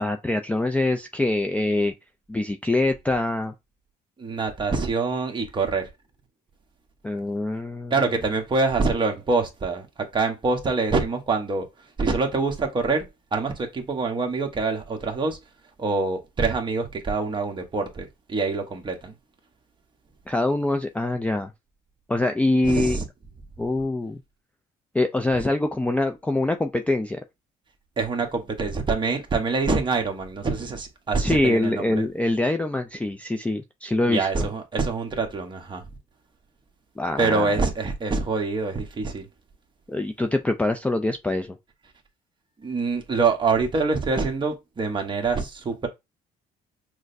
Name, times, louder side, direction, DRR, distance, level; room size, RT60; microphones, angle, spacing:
voice 1, 0.0-1.9 2.3-3.5 7.0-8.0 20.3-21.5 22.1-23.0 23.6-24.2 24.9-27.2 31.2-34.5 37.0-37.5 39.9-41.6, left 2 dB, 10° left, 0.4 m, -24 dB
voice 2, 4.2-5.9 7.9-11.7 12.0-15.4 15.8-19.1 22.6-23.0 28.0-32.0 34.0-35.8 37.2-39.3 42.6-45.9, right 4 dB, 30° right, 1.1 m, -25 dB
6.2 x 2.1 x 2.6 m
cardioid pair, 110°, 17 cm